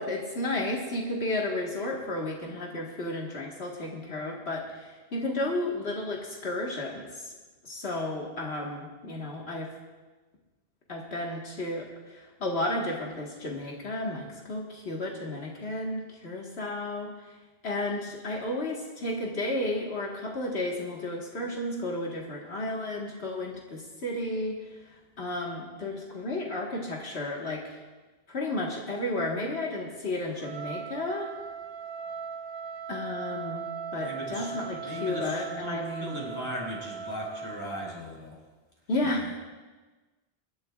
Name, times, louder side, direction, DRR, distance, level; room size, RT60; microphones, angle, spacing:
voice 1, 0.0-7.3 7.6-9.7 10.9-17.1 17.6-24.6 25.2-27.6 28.3-31.3 32.9-36.2 38.9-39.4, left 1 dB, 85° left, -2 dB, 1.8 m, -33 dB
Trumpet, 30.4-37.7, right 6 dB, 70° right, 1.0 m, -38 dB
voice 2, 34.0-38.4, left 1 dB, 20° left, -4 dB, 4.5 m, -38 dB
24.5 x 12.0 x 2.4 m, 1.3 s
omnidirectional pair, 1.0 m